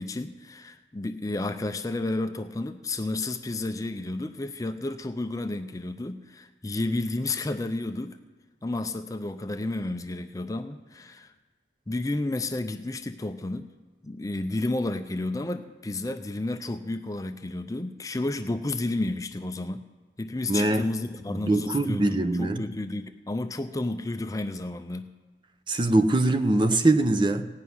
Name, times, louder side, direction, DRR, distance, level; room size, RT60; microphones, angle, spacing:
voice 1, 0.0-8.2 8.6-11.3 11.9-13.7 14.0-19.8 20.2-25.1, left 2 dB, 20° left, 8 dB, 0.5 m, -31 dB
voice 2, 20.5-20.8 21.3-22.6 25.7-27.5, right 2 dB, 25° right, 8 dB, 0.7 m, -23 dB
17.0 x 5.7 x 9.5 m, 1.3 s
head